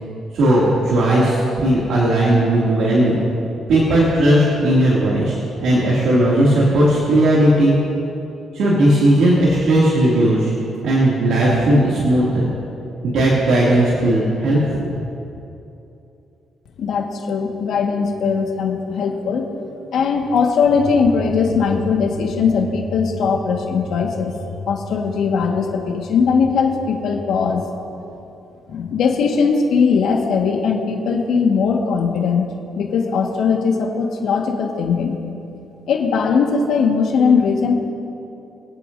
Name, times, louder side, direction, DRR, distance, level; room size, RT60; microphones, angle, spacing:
voice 1, 0.3-3.2 3.7-7.8 8.5-10.5 10.8-12.5 13.0-14.9, right 1 dB, 75° right, -7 dB, 2.5 m, -16 dB
voice 2, 16.8-19.4 19.9-27.6 28.7-32.5 32.8-35.2 35.9-37.7, left 5 dB, 75° left, 1 dB, 1.6 m, -19 dB
25.0 x 8.5 x 2.7 m, 2.8 s
cardioid pair, 90°, 0 cm